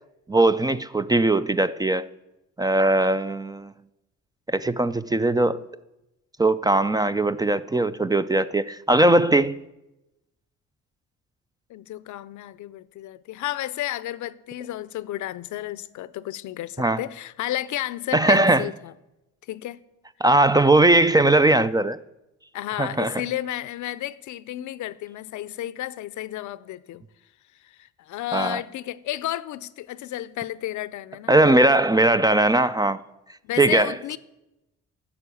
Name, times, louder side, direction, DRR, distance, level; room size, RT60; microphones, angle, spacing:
voice 1, 0.3-2.1 2.6-3.7 4.5-5.6 6.4-9.6 16.8-17.0 18.1-18.7 20.2-22.0 22.8-23.2 28.3-28.6 31.3-33.0 33.6-33.9, right 2 dB, 15° right, 0.4 m, -19 dB
voice 2, 11.7-18.9 19.5-19.8 22.5-27.0 27.6-31.4 31.7-32.0 33.4-34.2, left 14 dB, 75° left, 0.6 m, -32 dB
11.0 x 7.0 x 8.4 m
cardioid pair, 90°, 30 cm